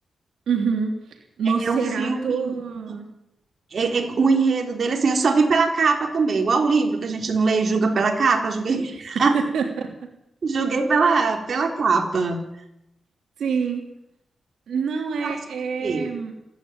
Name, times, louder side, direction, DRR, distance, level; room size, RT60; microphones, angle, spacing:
voice 1, 0.5-0.9 1.4-3.1 9.3-9.9 13.4-13.8 14.7-16.3, right 5 dB, 90° right, 3 dB, 3.3 m, -26 dB
voice 2, 1.6-2.5 2.9-3.0 3.7-9.4 10.4-12.4 15.2-15.3 15.8-16.1, right 4 dB, 50° right, 2 dB, 3.6 m, -21 dB
28.0 x 10.5 x 8.9 m, 0.84 s
wide cardioid pair, 115°, 0 cm